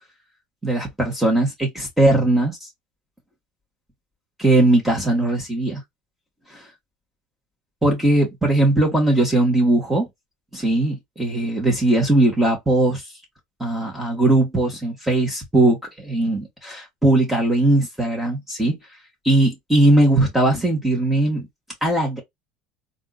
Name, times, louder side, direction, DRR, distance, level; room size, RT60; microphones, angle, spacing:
voice 1, 0.6-2.7 4.4-5.8 6.5-6.6 7.8-10.1 10.5-13.0 13.6-18.8 19.2-21.5 21.8-22.2, right 2 dB, 5° right, 1.7 m, -19 dB
3.5 x 2.7 x 2.4 m
supercardioid pair, 105°, 3 cm